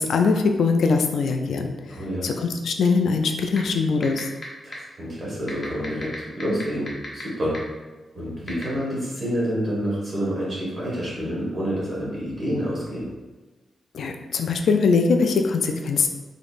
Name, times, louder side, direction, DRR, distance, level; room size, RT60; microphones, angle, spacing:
voice 1, 0.0-4.3 13.9-16.1, left 4 dB, 70° left, 4 dB, 0.3 m, -22 dB
voice 2, 1.9-2.3 4.6-6.1 6.4-7.5 8.1-13.1, equal, 35° right, -6 dB, 1.4 m, -28 dB
sound 1, 3.6-3.7 4.0-4.4 4.7-4.8 5.5-7.2 7.5-7.6 8.5-8.6, left 3 dB, 25° left, 0.7 m, -33 dB
3.6 x 3.5 x 2.4 m, 1.2 s
wide cardioid pair, 180°, 0 cm